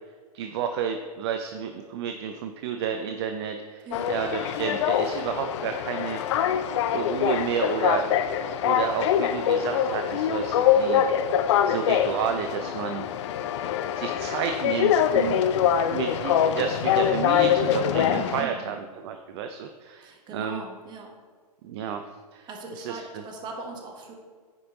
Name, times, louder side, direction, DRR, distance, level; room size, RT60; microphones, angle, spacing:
voice 1, 0.3-6.2 6.9-8.1 8.6-11.1 11.7-13.1 14.0-15.4 15.9-18.8 19.0-20.6 21.6-22.0 22.3-22.5 22.8-23.0, right 7 dB, 40° right, 6 dB, 0.5 m, -31 dB
sound 1, 3.9-18.4, left 9 dB, 45° left, 0.5 m, -24 dB
voice 2, 15.1-15.5 18.4-18.8 20.0-21.1 22.5-24.1, right 3 dB, 20° right, 1 dB, 1.4 m, -40 dB
9.2 x 5.3 x 3.8 m, 1.5 s
hypercardioid pair, 135°, 21 cm